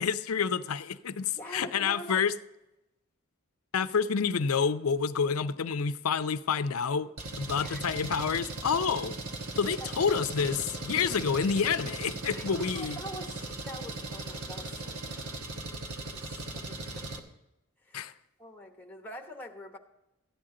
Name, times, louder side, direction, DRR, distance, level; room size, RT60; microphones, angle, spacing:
voice 1, 0.0-2.3 3.7-7.1 7.4-9.2 9.6-13.0 17.9-18.1, left 6 dB, 75° left, 0.6 m, -28 dB
voice 2, 1.3-2.2 7.5-7.8 9.8-9.9 12.3-15.5 16.2-17.1 17.8-18.1 18.4-19.8, equal, 10° left, 1.1 m, -45 dB
Engine, 7.2-17.2, right 2 dB, 90° right, 1.3 m, -38 dB
14.0 x 10.0 x 3.8 m
head